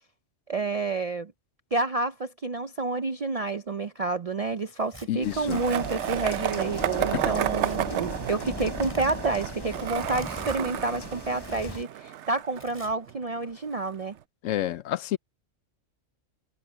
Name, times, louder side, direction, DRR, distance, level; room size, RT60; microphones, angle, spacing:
voice 1, 0.5-1.3 1.7-14.1, right 3 dB, 50° right, 0.4 m, -29 dB
Tearing, 4.6-5.1 5.9-6.5 7.5-7.8 8.6-9.2 10.0-10.6 11.4-11.8 12.5-13.1, equal, 15° right, 6.1 m, -45 dB
voice 2, 5.1-5.6 7.1-7.2 14.4-15.2, left 13 dB, 75° left, 0.9 m, -29 dB
sound 1, 5.2-11.8, left 3 dB, 25° left, 0.6 m, -39 dB
Skateboard, 5.5-13.5, right 11 dB, 65° right, 0.9 m, -32 dB
omnidirectional pair, 1.3 m